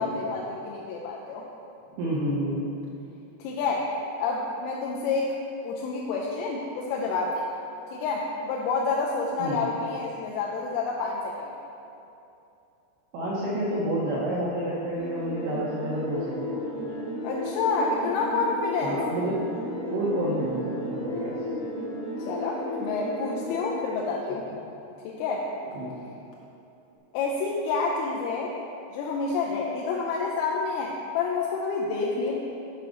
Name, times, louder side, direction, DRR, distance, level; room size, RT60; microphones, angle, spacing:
voice 1, 0.0-1.5 3.4-3.9 4.2-5.3 5.6-7.6 7.9-11.5 17.2-19.0 22.3-24.5 25.0-25.5 27.1-28.5 28.9-32.4, left 4 dB, 85° left, -2 dB, 3.2 m, -28 dB
voice 2, 1.9-2.6 9.4-9.6 13.1-16.6 18.8-19.5 19.9-21.4 25.7-25.9, right 1 dB, 70° right, -7 dB, 2.8 m, -29 dB
sound 1, 14.9-24.2, left 1 dB, 65° left, 2.8 m, -33 dB
7.4 x 7.0 x 5.1 m, 2.9 s
omnidirectional pair, 5.8 m